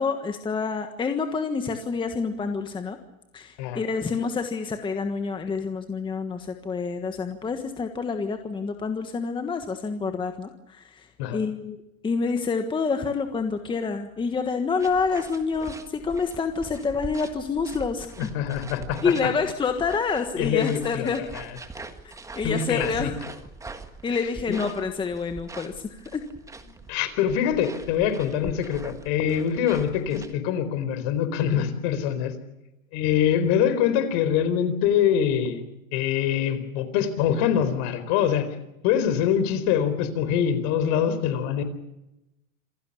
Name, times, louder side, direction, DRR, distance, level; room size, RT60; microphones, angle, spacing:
voice 1, 0.0-3.0 3.3-11.8 12.0-18.1 19.0-21.2 22.4-23.2 24.0-26.2, left 5 dB, 10° left, 6 dB, 1.4 m, -28 dB
sound 1, 14.8-30.3, right 3 dB, 5° right, 1.6 m, -43 dB
voice 2, 18.2-19.3 20.4-21.6 22.4-23.1 24.1-24.2 24.5-24.6 26.9-32.3 32.9-35.6 35.9-38.5 38.8-41.6, left 9 dB, 45° left, 11 dB, 4.4 m, -24 dB
27.5 x 16.5 x 8.5 m, 0.91 s
supercardioid pair, 145°, 42 cm